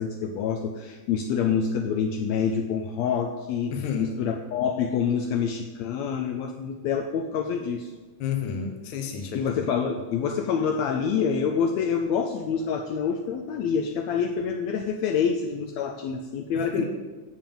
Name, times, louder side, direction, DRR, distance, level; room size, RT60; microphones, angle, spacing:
voice 1, 0.0-3.7 4.0-7.9 9.3-16.8, left 6 dB, 85° left, 4 dB, 1.6 m, -27 dB
voice 2, 3.7-4.2 8.2-9.5 16.6-16.8, left 6 dB, 65° left, 4 dB, 1.4 m, -30 dB
7.3 x 5.7 x 7.0 m, 1.3 s
omnidirectional pair, 3.7 m